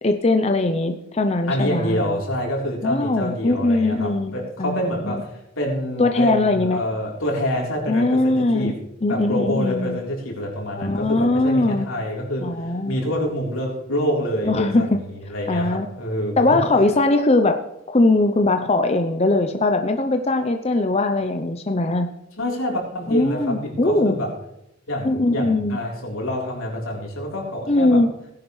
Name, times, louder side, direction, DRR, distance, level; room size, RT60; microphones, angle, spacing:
voice 1, 0.0-2.0 2.8-4.8 5.1-5.2 6.0-6.8 7.9-8.7 9.0-10.0 10.8-11.9 12.4-13.0 14.5-15.0 15.5-15.9 16.4-17.6 17.9-22.1 23.1-24.2 25.0-25.8 27.7-28.1, left 2 dB, 30° left, 6 dB, 0.6 m, -20 dB
voice 2, 1.5-8.8 9.1-16.5 22.4-24.3 24.9-28.0, equal, 90° left, -2 dB, 3.8 m, -27 dB
17.5 x 10.5 x 3.2 m, 0.84 s
head